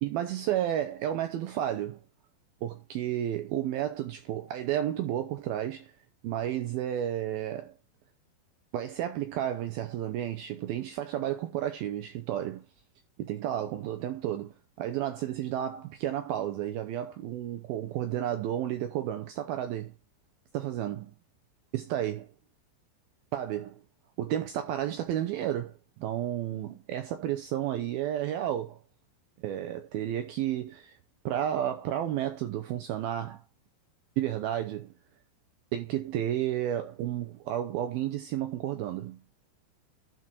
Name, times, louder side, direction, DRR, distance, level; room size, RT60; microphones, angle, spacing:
voice 1, 0.0-2.0 2.6-5.9 6.2-7.7 8.7-12.6 13.2-19.9 20.5-21.1 21.7-22.2 23.3-23.8 24.2-28.8 29.4-31.0 31.3-33.4 34.2-34.9 35.7-39.2, right 11 dB, 75° right, 2.2 m, -32 dB
12.0 x 4.6 x 4.3 m
omnidirectional pair, 5.2 m